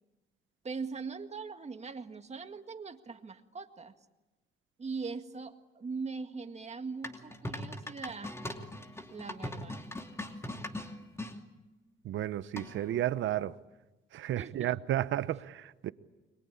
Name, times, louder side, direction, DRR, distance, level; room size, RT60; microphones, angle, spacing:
voice 1, 0.6-3.9 4.8-8.4 9.1-9.8 14.3-14.8, right 4 dB, 35° right, 1.9 m, -41 dB
sound 1, 7.0-11.4 12.6-13.0, left 1 dB, 15° left, 2.7 m, -40 dB
voice 2, 12.0-13.6 14.1-15.9, right 12 dB, 75° right, 0.9 m, -32 dB
30.0 x 22.5 x 8.6 m
cardioid pair, 90°, 20 cm